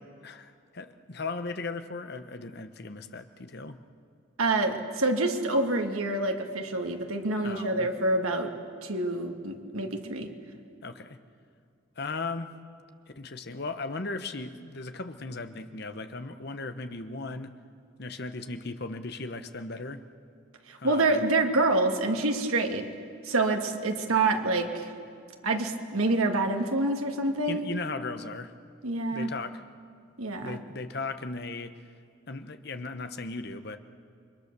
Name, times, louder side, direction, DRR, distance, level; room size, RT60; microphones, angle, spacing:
voice 1, 0.2-3.8 7.4-7.9 10.8-11.2 12.0-12.5 13.1-17.5 18.0-20.0 20.8-21.3 25.4-25.5 27.5-28.5 29.1-29.6 30.4-31.8 32.3-33.8, left 3 dB, 50° left, 9 dB, 1.1 m, -37 dB
voice 2, 4.4-8.5 8.8-10.3 20.7-22.8 23.2-24.9 25.4-27.6 28.8-29.3 30.2-30.6, right 2 dB, 90° right, 4 dB, 2.2 m, -27 dB
29.0 x 23.5 x 6.9 m, 2.3 s
head